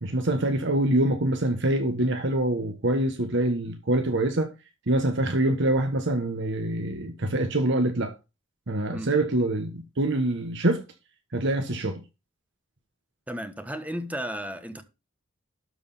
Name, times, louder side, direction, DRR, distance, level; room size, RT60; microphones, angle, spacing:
voice 1, 0.0-4.5 4.9-8.1 8.7-10.8 11.3-12.0, right 1 dB, 60° right, 1.2 m, -25 dB
voice 2, 13.3-14.8, equal, 5° right, 1.2 m, -34 dB
12.5 x 4.8 x 5.5 m
head